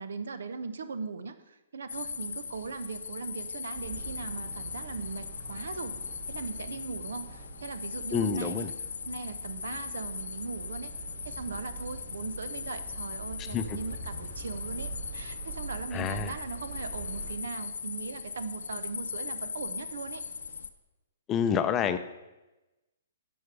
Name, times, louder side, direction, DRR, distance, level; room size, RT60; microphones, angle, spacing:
voice 1, 0.0-6.0 6.3-8.7 9.1-10.9 11.2-20.2, right 4 dB, 85° right, 11 dB, 0.8 m, -39 dB
sound 1, 1.9-20.7, left 6 dB, 90° left, 0.7 m, -39 dB
sound 2, 3.7-17.3, right 3 dB, 60° right, 2.6 m, -44 dB
voice 2, 8.1-8.7 13.5-13.8 15.9-16.3 21.3-22.0, left 7 dB, 20° left, 10 dB, 0.5 m, -28 dB
11.0 x 7.2 x 4.8 m, 1.0 s
hypercardioid pair, 155°, 0 cm